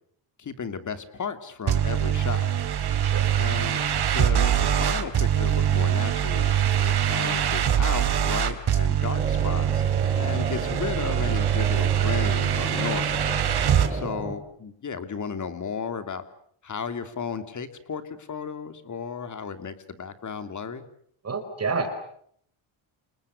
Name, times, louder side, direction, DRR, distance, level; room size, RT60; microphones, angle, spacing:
voice 1, 0.4-2.5 3.3-3.8 4.1-9.8 10.1-13.3 13.9-16.2 16.6-20.8, left 6 dB, 35° left, 10 dB, 3.0 m, -34 dB
sound 1, 1.7-13.9, right 9 dB, 50° right, 3.5 m, -23 dB
sound 2, 9.1-14.4, right 2 dB, 15° right, 3.7 m, -33 dB
voice 2, 21.2-21.9, right 4 dB, 30° right, 7 dB, 4.4 m, -30 dB
29.5 x 28.0 x 6.7 m, 0.66 s
cardioid pair, 150°, 49 cm